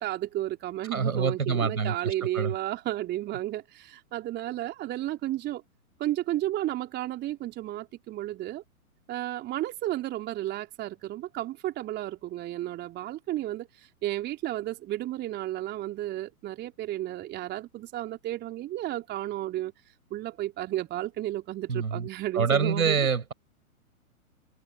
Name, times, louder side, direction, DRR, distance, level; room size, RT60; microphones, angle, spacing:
voice 1, 0.0-5.6 6.0-8.6 9.1-19.7 20.1-23.1, right 14 dB, 25° right, 3.7 m, -33 dB
voice 2, 0.9-2.5 21.7-22.1 22.3-23.3, right 6 dB, 70° right, 6.7 m, -26 dB
figure-of-eight pair, 115°, 43 cm